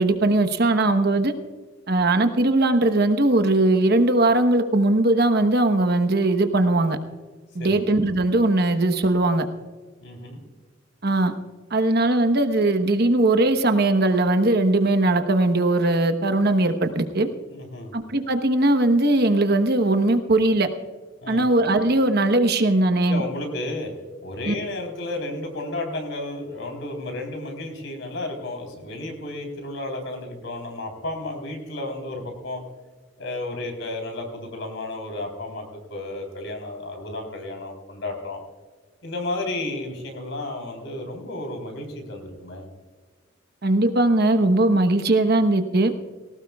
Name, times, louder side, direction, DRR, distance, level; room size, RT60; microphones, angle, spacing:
voice 1, 0.0-1.3 1.9-7.0 7.5-9.5 11.0-11.3 11.7-17.3 17.9-20.7 21.3-23.2 24.5-24.6 43.6-45.9, right 2 dB, 55° right, 8 dB, 1.1 m, -20 dB
voice 2, 10.0-10.4 17.5-17.9 21.2-21.4 23.1-23.9 24.2-32.6 33.2-38.4 39.0-42.7, left 2 dB, 70° left, 3 dB, 3.7 m, -32 dB
19.0 x 17.5 x 2.4 m, 1.4 s
head